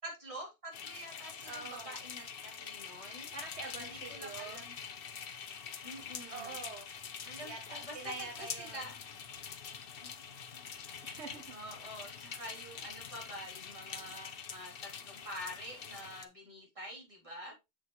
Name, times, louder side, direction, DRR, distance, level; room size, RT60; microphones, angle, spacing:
voice 1, 0.0-3.3 3.8-4.8 5.8-6.6 7.2-9.0 9.7-10.1 10.5-10.6 11.5-17.6, equal, 30° right, 3.5 m, -47 dB
sound 1, 0.7-16.2, left 7 dB, 55° left, 1.0 m, -45 dB
voice 2, 1.4-2.0 3.3-4.6 6.3-6.9 7.4-8.8 11.0-11.5, right 4 dB, 70° right, 1.3 m, -45 dB
7.5 x 6.8 x 3.2 m
omnidirectional pair, 1.2 m